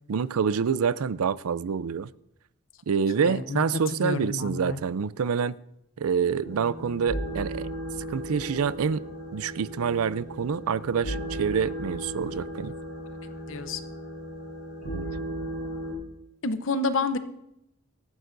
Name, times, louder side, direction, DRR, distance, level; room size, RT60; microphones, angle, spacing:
voice 1, 0.1-2.1 2.9-5.6 6.0-7.7 8.1-9.0 9.3-12.7 14.8-15.1, right 6 dB, 80° right, 0.4 m, -27 dB
voice 2, 3.2-3.6 3.9-4.8 13.5-13.8 16.4-17.2, left 3 dB, 60° left, 0.8 m, -29 dB
sound 1, 6.4-15.9, equal, 40° left, 4.3 m, -36 dB
17.5 x 14.0 x 2.6 m
head